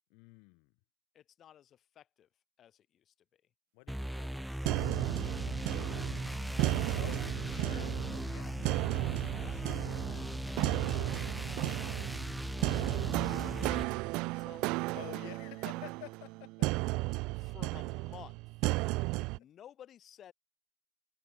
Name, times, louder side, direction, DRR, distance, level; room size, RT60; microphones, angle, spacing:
voice 1, 0.1-0.7 3.7-4.6 6.9-8.6 9.4-9.8 14.9-16.9 18.8-19.3, left 35 dB, 50° left, 7.6 m, -51 dB
voice 2, 1.1-2.3 2.6-3.4 5.7-6.5 9.2-10.9 11.3-14.9 17.3-18.7 19.3-20.3, left 10 dB, 30° left, 7.4 m, -56 dB
sound 1, 3.9-13.8, equal, ahead, 1.0 m, -38 dB
sound 2, 4.7-19.4, right 24 dB, 45° right, 0.5 m, -34 dB
figure-of-eight pair, 85°, 0 cm